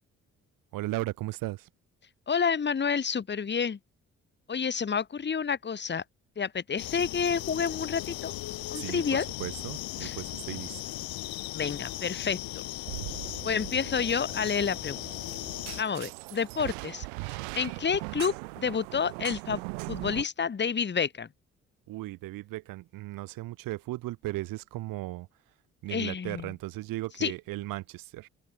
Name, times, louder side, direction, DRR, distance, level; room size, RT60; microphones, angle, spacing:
voice 1, 0.7-1.7 8.8-10.8 21.9-25.3 25.8-28.3, right 18 dB, 60° right, 0.8 m, -36 dB
voice 2, 2.3-3.8 4.5-6.0 6.4-8.3 8.7-9.3 10.0-10.2 11.5-12.6 13.4-15.0 15.8-19.6 19.9-21.3 25.9-26.5 27.2-27.3, left 6 dB, 25° left, 1.3 m, -29 dB
sound 1, 6.8-15.8, left 16 dB, 65° left, 2.2 m, -37 dB
sound 2, 12.9-20.2, right 40 dB or more, 75° right, 2.8 m, -40 dB
open air
figure-of-eight pair, 45°, 39 cm